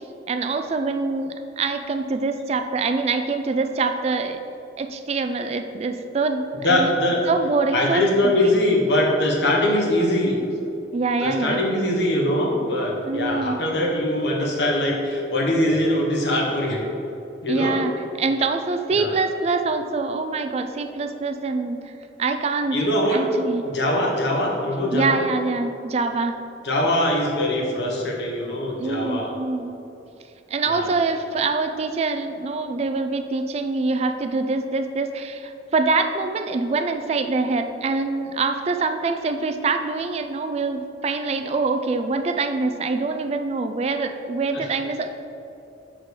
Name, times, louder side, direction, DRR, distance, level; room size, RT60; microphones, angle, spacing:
voice 1, 0.3-7.0 7.3-8.0 10.9-11.6 13.0-13.6 17.5-17.9 18.2-21.8 22.2-22.8 23.1-23.6 24.9-26.4 28.8-29.8 30.5-45.1, right 3 dB, 35° right, 7 dB, 0.3 m, -24 dB
voice 2, 6.6-7.2 7.7-10.4 11.2-16.8 17.4-17.8 18.9-19.1 22.7-23.3 23.6-25.2 26.6-29.3 30.6-30.9 44.5-44.7, left 1 dB, 75° left, -2 dB, 1.2 m, -22 dB
6.5 x 3.7 x 4.7 m, 2.8 s
head